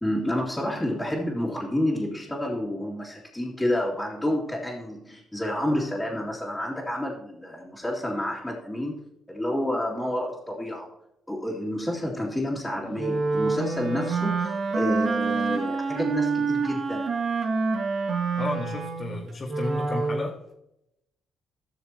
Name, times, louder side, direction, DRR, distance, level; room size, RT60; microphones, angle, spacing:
voice 1, 0.0-9.0 9.3-10.9 11.3-17.1, left 1 dB, 5° left, -8 dB, 2.7 m, -29 dB
Wind instrument woodwind instrument, 13.0-20.3, right 4 dB, 55° right, 2.1 m, -27 dB
voice 2, 18.4-20.3, left 2 dB, 35° left, -2 dB, 1.6 m, -32 dB
15.5 x 6.6 x 3.0 m, 0.82 s
cardioid pair, 90°, 0 cm